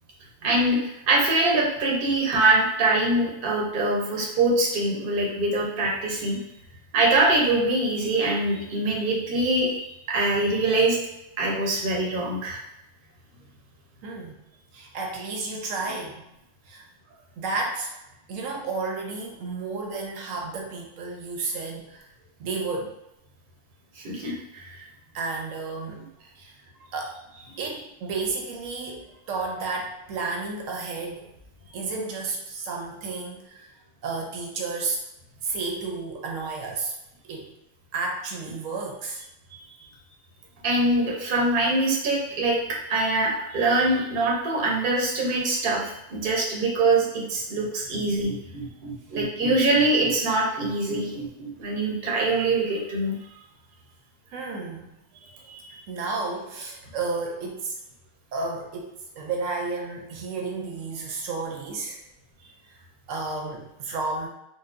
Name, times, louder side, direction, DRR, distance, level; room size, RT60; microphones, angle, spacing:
voice 1, 0.4-6.4 6.9-9.8 10.1-11.0 11.4-12.6 24.0-24.8 40.6-53.2 55.5-55.6, right 2 dB, 50° right, -3 dB, 0.8 m, -24 dB
voice 2, 14.0-14.4 14.7-16.2 16.7-17.9 18.3-22.1 22.4-22.9 25.1-26.5 26.8-27.2 27.6-31.2 31.7-33.7 34.0-35.0 35.4-36.9 37.2-37.5 37.9-39.2 48.6-48.7 54.3-54.9 55.9-57.8 58.3-62.0 63.1-64.3, right 3 dB, 80° right, 0 dB, 1.1 m, -32 dB
3.9 x 2.2 x 2.5 m, 0.89 s
omnidirectional pair, 1.3 m